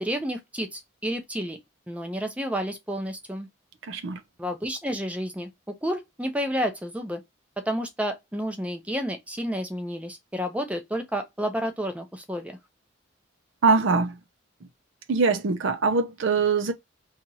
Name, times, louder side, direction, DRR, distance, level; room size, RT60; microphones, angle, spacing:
voice 1, 0.0-1.6 1.9-3.5 4.4-5.5 5.8-7.2 7.6-12.6, equal, 5° right, 0.5 m, -30 dB
voice 2, 3.9-4.2 13.6-14.2 15.1-16.7, right 4 dB, 70° right, 0.5 m, -22 dB
2.9 x 2.4 x 4.0 m
head